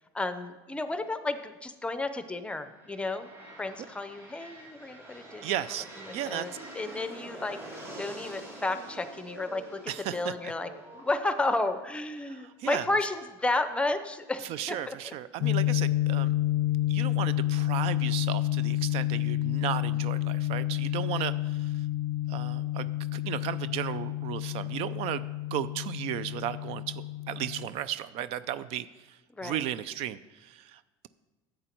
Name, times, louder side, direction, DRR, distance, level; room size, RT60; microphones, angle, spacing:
voice 1, 0.1-3.3 3.6-5.5 6.1-7.6 8.0-9.8 10.1-15.1 29.3-29.6, left 2 dB, 10° left, 11 dB, 0.6 m, -32 dB
sound 1, 2.7-12.5, right 1 dB, 20° right, 2.5 m, -47 dB
sound 2, 4.8-12.0, right 1 dB, 80° right, 1.9 m, -50 dB
voice 2, 5.4-5.9 6.1-6.5 9.9-10.5 12.3-12.8 14.4-16.3 16.9-21.9 22.3-25.2 25.5-31.1, right 11 dB, 60° right, 16 dB, 0.4 m, -35 dB
sound 3, 15.4-27.7, left 15 dB, 60° left, 0.5 m, -29 dB
11.0 x 7.8 x 4.5 m, 1.1 s
supercardioid pair, 120°, 12 cm